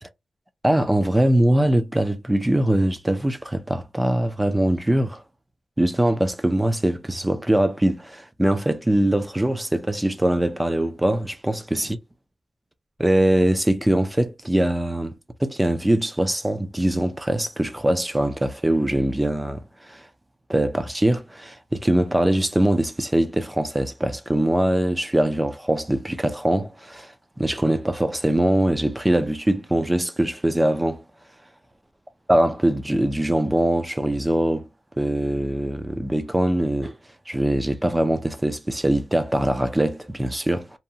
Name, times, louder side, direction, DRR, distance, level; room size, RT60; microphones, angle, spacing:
voice 1, 0.6-5.2 5.8-12.0 13.0-15.1 15.4-20.1 20.5-27.1 27.4-31.0 32.3-34.7 35.0-36.9 37.3-40.8, right 1 dB, 10° right, 0.4 m, -22 dB
2.7 x 2.2 x 2.7 m
wide cardioid pair, 140°, 0 cm